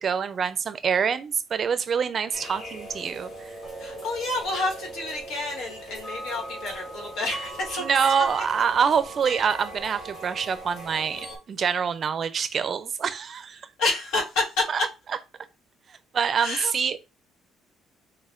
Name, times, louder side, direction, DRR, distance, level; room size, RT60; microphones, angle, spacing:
voice 1, 0.0-3.3 7.8-11.2 11.5-13.6 14.7-14.8 16.1-17.0, right 6 dB, 40° right, 0.4 m, -25 dB
sound 1, 2.3-11.4, right 2 dB, 60° left, 1.9 m, -39 dB
voice 2, 3.8-7.8 13.8-14.6 16.4-16.7, left 2 dB, 85° left, 1.4 m, -29 dB
6.1 x 2.2 x 2.5 m
cardioid pair, 125°, 0 cm